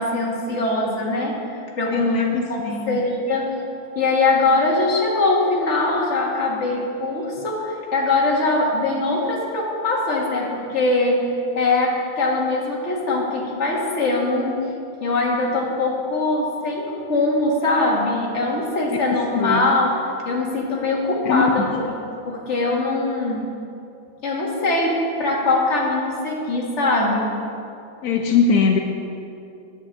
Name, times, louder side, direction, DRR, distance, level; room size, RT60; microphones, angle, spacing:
voice 1, 0.0-1.4 1.8-3.6 4.0-14.7 15.0-20.0 20.3-23.5 24.2-27.4, left 2 dB, 35° left, -2 dB, 1.7 m, -22 dB
voice 2, 1.9-3.0 19.4-19.7 21.2-21.8 28.0-28.8, left 5 dB, 70° left, 2 dB, 0.9 m, -21 dB
10.0 x 6.1 x 8.5 m, 2.7 s
omnidirectional pair, 2.4 m